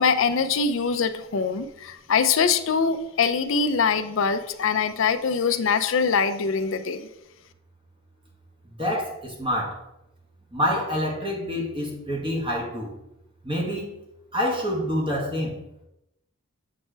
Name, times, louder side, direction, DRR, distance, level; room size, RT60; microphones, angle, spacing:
voice 1, 0.0-7.1, left 5 dB, 65° left, 9 dB, 0.5 m, -23 dB
voice 2, 8.8-9.8 10.5-12.9 13.4-13.9 14.3-15.6, equal, 25° right, -2 dB, 1.3 m, -27 dB
7.6 x 4.4 x 3.3 m, 0.84 s
head